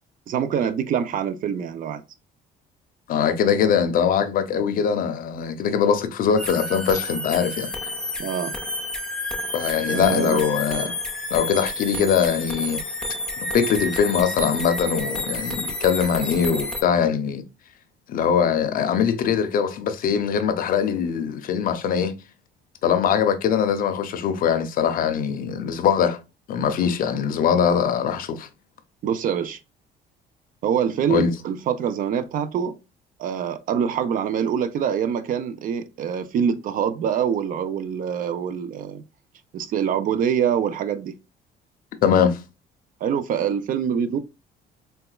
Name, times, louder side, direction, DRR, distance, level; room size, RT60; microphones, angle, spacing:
voice 1, 0.3-2.0 8.2-8.6 9.9-10.4 29.0-29.6 30.6-32.7 33.2-39.0 39.5-41.2 43.0-44.2, right 8 dB, 55° right, 0.4 m, -25 dB
voice 2, 3.1-7.7 9.5-10.9 11.3-12.8 13.5-17.4 18.1-22.1 22.8-26.2 26.5-28.5 31.1-31.3 42.0-42.4, left 7 dB, 55° left, 0.5 m, -22 dB
sound 1, 6.4-16.8, left 1 dB, 5° left, 0.5 m, -30 dB
4.0 x 2.2 x 2.3 m
cardioid pair, 110°, 17 cm